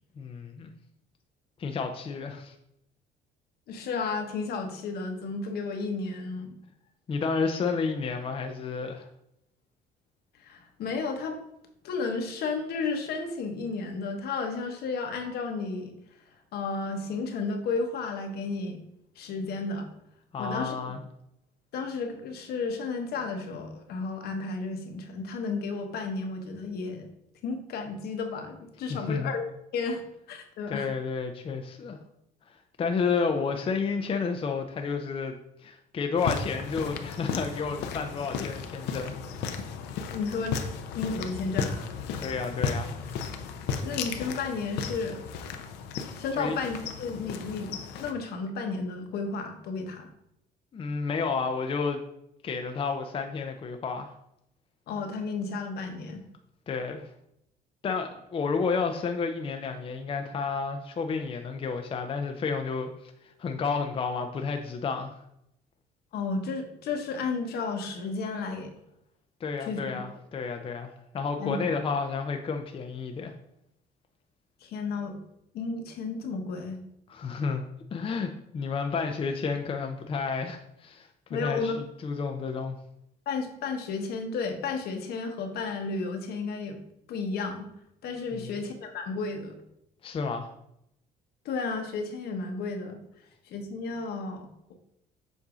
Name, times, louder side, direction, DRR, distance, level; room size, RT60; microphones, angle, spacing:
voice 1, 0.2-0.7 1.6-2.5 7.1-9.1 20.3-21.0 28.9-29.3 30.7-32.0 32.8-39.2 42.2-42.9 46.3-46.6 50.7-52.0 52.4-54.1 56.7-57.1 57.8-63.1 63.4-65.1 69.4-73.3 77.1-77.6 77.9-81.7 82.0-82.8 88.3-88.5 90.0-90.5, left 5 dB, 30° left, 4 dB, 0.5 m, -31 dB
voice 2, 3.7-6.5 10.4-11.4 11.8-15.9 16.5-18.8 19.2-19.9 20.4-21.0 21.7-27.1 27.4-29.4 29.7-30.9 40.1-40.6 40.9-41.8 43.8-45.2 46.1-50.1 54.9-56.2 66.1-68.8 69.6-70.0 71.4-71.6 74.6-75.2 75.5-76.8 81.3-81.8 83.3-86.8 87.1-87.7 88.0-89.6 91.4-93.0 93.5-94.7, left 4 dB, 70° left, 5 dB, 1.0 m, -33 dB
sound 1, 36.2-48.1, left 6 dB, 85° left, 0.6 m, -35 dB
7.2 x 2.7 x 4.9 m, 0.79 s
cardioid pair, 110°, 17 cm